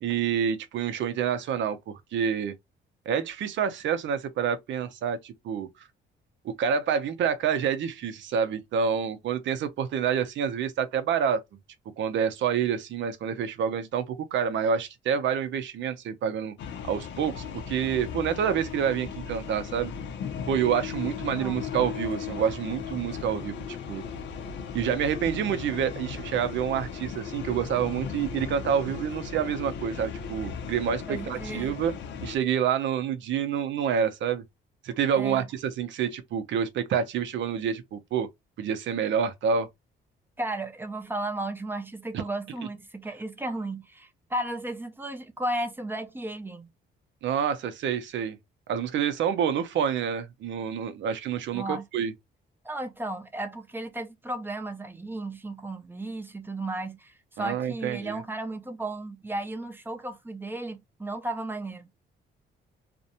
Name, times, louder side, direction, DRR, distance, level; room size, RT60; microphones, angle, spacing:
voice 1, 0.0-2.5 3.1-5.7 6.4-11.4 12.0-16.5 16.9-19.9 20.5-24.0 24.7-31.9 32.2-34.4 34.8-38.3 38.6-39.7 47.2-48.4 48.7-52.1 57.4-58.2, right 8 dB, 70° right, 0.6 m, -28 dB
sound 1, 16.6-32.4, left 7 dB, 70° left, 0.5 m, -37 dB
voice 2, 31.1-31.8 35.2-35.5 40.4-46.7 51.5-51.9 52.6-62.0, right 1 dB, 10° right, 0.5 m, -34 dB
2.5 x 2.1 x 2.7 m
cardioid pair, 90°, 20 cm